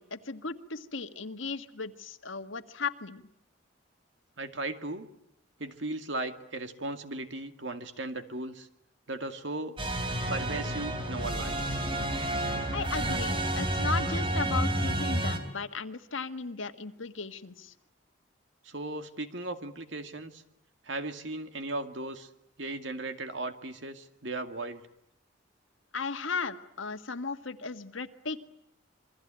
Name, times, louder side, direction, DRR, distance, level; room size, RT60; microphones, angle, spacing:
voice 1, 0.0-3.2 12.7-17.7 25.9-28.4, left 4 dB, 80° left, 8 dB, 1.7 m, -36 dB
voice 2, 4.4-5.1 5.6-8.7 9.1-9.8 10.3-11.8 18.6-20.4 20.8-22.3 22.6-24.8, right 2 dB, 70° right, 7 dB, 2.3 m, -37 dB
sound 1, 9.8-15.4, right 1 dB, 25° right, 3.7 m, -30 dB
27.5 x 24.0 x 9.0 m, 0.77 s
head